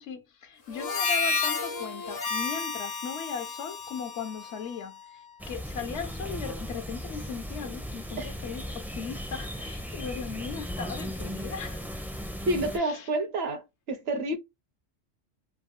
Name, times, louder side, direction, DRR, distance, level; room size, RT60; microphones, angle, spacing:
voice 1, 0.0-12.1 12.7-13.1, left 6 dB, 65° left, 0.9 m, -38 dB
Harmonica, 0.7-5.3, left 4 dB, 85° left, 1.4 m, -32 dB
sound 1, 5.4-12.8, equal, ahead, 0.4 m, -37 dB
voice 2, 12.5-14.4, right 1 dB, 60° right, 0.9 m, -29 dB
3.3 x 2.1 x 2.5 m
omnidirectional pair, 1.3 m